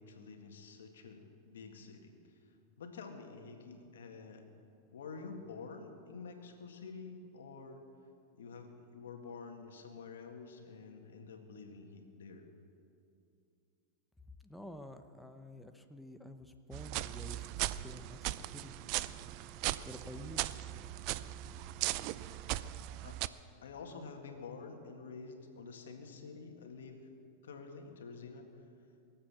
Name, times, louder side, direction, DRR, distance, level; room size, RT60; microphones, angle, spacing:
voice 1, 0.0-2.1 2.8-4.5 4.9-7.9 8.3-12.5 23.0-23.2 23.6-27.1 27.4-28.5, left 4 dB, 90° left, 4 dB, 1.8 m, -49 dB
voice 2, 14.4-18.7 19.9-20.4, left 1 dB, 5° left, 7 dB, 0.8 m, -50 dB
sound 1, 16.7-23.3, right 16 dB, 55° right, 0.5 m, -38 dB
sound 2, 17.0-22.7, left 1 dB, 70° right, 3.4 m, -62 dB
22.0 x 7.8 x 7.4 m, 2.6 s
hypercardioid pair, 115°, 0 cm